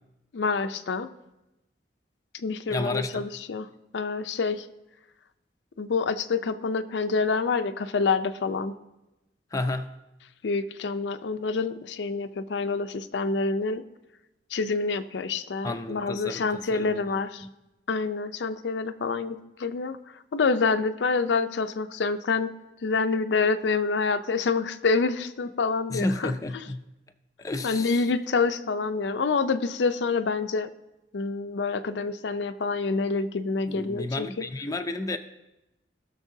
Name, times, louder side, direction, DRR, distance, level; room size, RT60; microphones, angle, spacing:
voice 1, 0.3-1.1 2.3-3.7 3.9-4.7 5.8-8.7 10.4-13.8 14.5-17.5 17.9-20.0 20.3-22.5 22.8-26.3 27.6-30.7 31.1-34.5, left 4 dB, 75° left, 0.5 m, -27 dB
voice 2, 2.7-3.3 9.5-9.9 15.6-17.0 17.4-17.5 25.9-26.8 27.4-28.1 33.7-35.2, left 2 dB, 20° left, 0.4 m, -31 dB
19.5 x 6.6 x 2.7 m
head